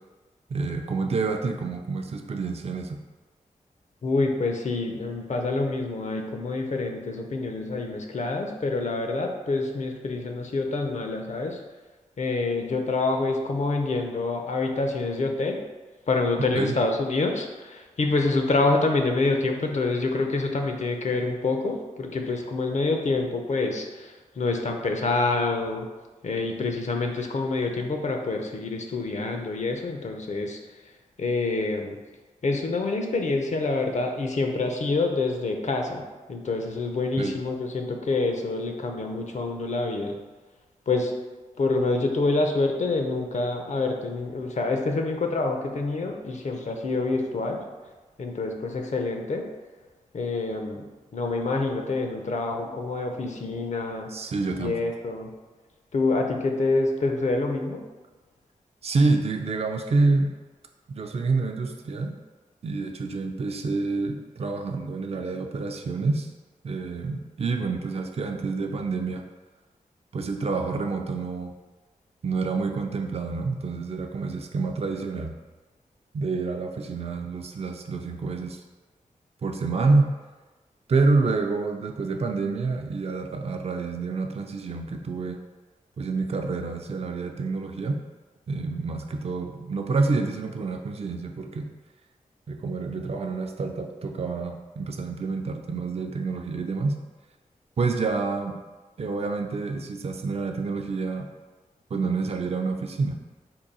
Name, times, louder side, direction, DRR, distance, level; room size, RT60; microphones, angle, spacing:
voice 1, 0.5-3.0 16.4-16.7 37.2-37.3 54.1-54.8 58.8-60.3 60.9-62.1 62.6-66.3 66.6-69.2 70.1-71.5 72.2-75.4 76.1-78.6 79.4-80.1 80.9-85.4 86.0-88.0 88.5-91.7 92.5-97.0 97.8-98.6 99.0-101.3 101.9-103.2, right 3 dB, 45° right, 4 dB, 0.4 m, -27 dB
voice 2, 4.0-11.6 12.2-15.6 16.1-25.9 26.2-30.6 31.2-32.0 32.4-40.2 40.9-41.1 41.6-47.6 48.2-49.5 50.1-50.8 51.1-54.1 54.5-55.3 55.9-57.8, left 3 dB, 55° left, 3 dB, 0.5 m, -27 dB
3.7 x 2.3 x 4.0 m, 1.2 s
cardioid pair, 55°, 14 cm